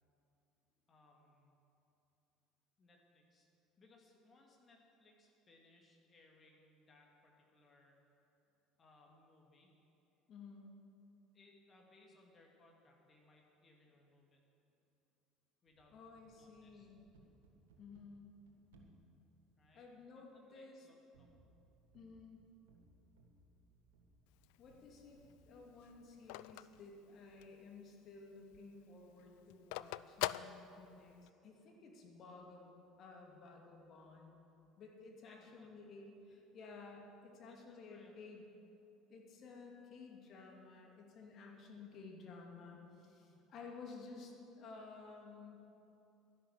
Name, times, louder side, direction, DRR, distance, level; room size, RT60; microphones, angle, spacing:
voice 1, 0.9-1.6 2.8-3.5 3.8-8.2 8.8-9.7 11.3-14.4 15.6-16.0 16.3-16.9 19.6-19.9 20.3-21.3 35.2-35.7 37.4-38.1 43.2-43.5, left 2 dB, 35° left, 0 dB, 2.6 m, -67 dB
voice 2, 10.3-10.7 15.9-17.0 17.8-18.3 19.7-20.9 21.9-22.4 24.6-34.4 34.8-38.5 39.1-45.7, left 4 dB, 50° left, 0 dB, 2.7 m, -54 dB
sound 1, 15.7-20.3 21.1-25.9, right 3 dB, 75° right, 1.6 m, -68 dB
Telephone, 24.3-27.7 28.1-28.2 28.4-31.3, left 17 dB, 70° left, 0.3 m, -44 dB
12.5 x 11.0 x 7.4 m, 2.8 s
hypercardioid pair, 65°, 0 cm